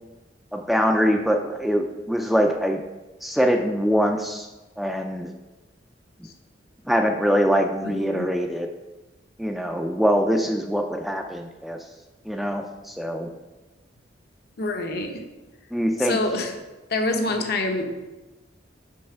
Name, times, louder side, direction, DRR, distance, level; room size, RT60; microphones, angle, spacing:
voice 1, 0.5-2.8 3.2-4.5 4.8-5.3 6.9-8.7 9.4-11.8 12.3-13.3 15.7-16.2, equal, ahead, 3 dB, 0.3 m, -23 dB
voice 2, 7.9-8.3 14.6-15.1 16.0-16.5 16.9-18.0, left 2 dB, 60° left, 4 dB, 0.7 m, -26 dB
5.4 x 3.3 x 5.6 m, 1.1 s
head